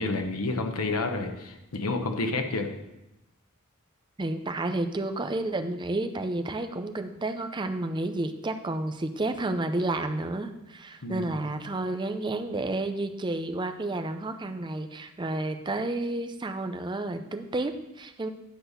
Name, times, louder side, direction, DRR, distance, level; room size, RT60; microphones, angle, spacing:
voice 1, 0.0-2.7 11.0-11.3, left 3 dB, 85° left, 5 dB, 1.0 m, -29 dB
voice 2, 4.2-18.3, right 2 dB, 20° right, 7 dB, 0.5 m, -31 dB
10.5 x 4.1 x 6.6 m, 0.94 s
head